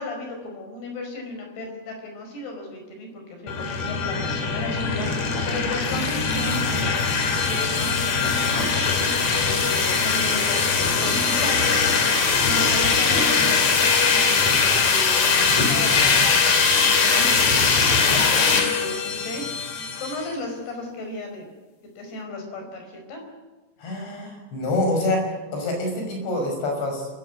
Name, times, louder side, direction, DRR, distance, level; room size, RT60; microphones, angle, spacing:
voice 1, 0.0-6.6 7.3-11.9 12.4-19.7 20.0-21.5 22.0-23.2, left 2 dB, 65° left, 3 dB, 7.0 m, -35 dB
sound 1, 3.5-20.2, left 5 dB, 45° left, 3.4 m, -21 dB
voice 2, 23.8-27.1, left 1 dB, 85° left, 3 dB, 8.2 m, -26 dB
26.0 x 16.0 x 9.5 m, 1.2 s
omnidirectional pair, 5.0 m